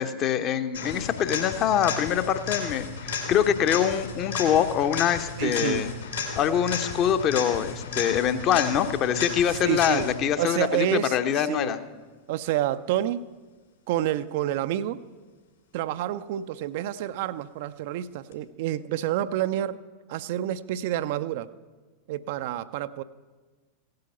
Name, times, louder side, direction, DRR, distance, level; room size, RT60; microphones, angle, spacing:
voice 1, 0.0-5.9 6.4-11.8, left 9 dB, 35° left, 9 dB, 0.9 m, -24 dB
sound 1, 0.7-10.3 18.3-18.4, left 4 dB, 65° left, 2.4 m, -33 dB
voice 2, 5.4-5.8 9.5-10.1 10.4-11.2 11.5-11.7 12.3-13.2 13.9-15.0 15.7-19.8 20.1-21.5 22.1-23.0, right 12 dB, 50° right, 13 dB, 0.5 m, -28 dB
16.5 x 10.5 x 5.7 m, 1.3 s
figure-of-eight pair, 90°, 0 cm